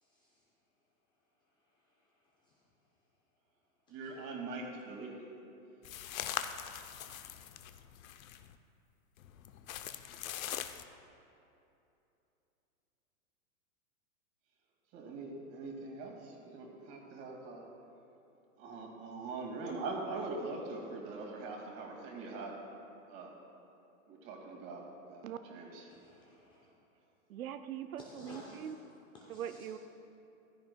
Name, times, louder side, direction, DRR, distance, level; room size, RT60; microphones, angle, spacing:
voice 1, 0.0-0.4 2.4-2.5 3.9-4.1 7.1-7.2 25.9-26.7 28.0-28.8 29.1-29.7, left 2 dB, 10° left, -3 dB, 0.4 m, -55 dB
voice 2, 3.9-5.2 14.9-17.7 18.6-22.6 23.1-23.3 24.1-25.9, right 3 dB, 35° right, -1 dB, 2.2 m, -42 dB
sound 1, 5.8-8.5 9.2-10.8, left 10 dB, 75° left, 0.7 m, -42 dB
voice 3, 27.3-28.7 29.4-29.8, right 10 dB, 85° right, 9 dB, 0.7 m, -41 dB
15.0 x 13.0 x 2.3 m, 2.8 s
hypercardioid pair, 145°, 42 cm